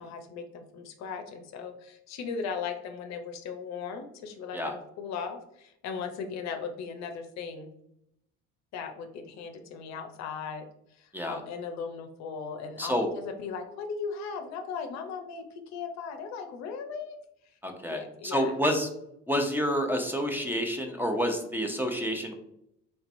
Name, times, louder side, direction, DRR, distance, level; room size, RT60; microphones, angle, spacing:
voice 1, 0.0-7.7 8.7-10.7 11.0-17.2 17.9-18.6, left 5 dB, 65° left, 6 dB, 0.6 m, -37 dB
voice 2, 17.6-18.9 19.3-22.3, equal, 5° right, 4 dB, 0.6 m, -29 dB
3.4 x 2.9 x 2.6 m, 0.78 s
supercardioid pair, 75°, 29 cm